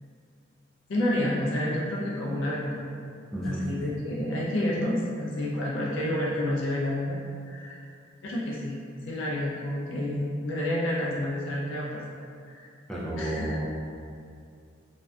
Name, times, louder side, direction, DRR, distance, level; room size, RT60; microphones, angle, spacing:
voice 1, 0.9-2.9 3.4-7.2 7.4-7.8 8.2-12.0 12.5-12.7 13.2-13.5, left 1 dB, 85° left, -5 dB, 0.4 m, -29 dB
voice 2, 3.3-3.7 12.9-13.6, right 1 dB, 5° left, -7 dB, 0.3 m, -31 dB
2.5 x 2.1 x 2.3 m, 2.4 s
head